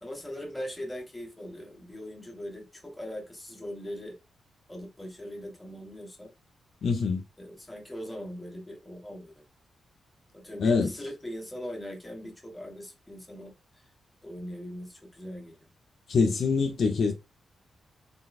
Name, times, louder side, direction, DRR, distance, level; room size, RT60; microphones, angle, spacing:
voice 1, 0.0-4.2 4.7-6.3 7.4-9.3 10.3-13.5 14.2-15.7, equal, 10° left, 1.7 m, -40 dB
voice 2, 6.8-7.2 10.6-10.9 16.1-17.1, left 4 dB, 55° left, 0.7 m, -24 dB
4.1 x 3.9 x 2.4 m
wide cardioid pair, 120°, 0 cm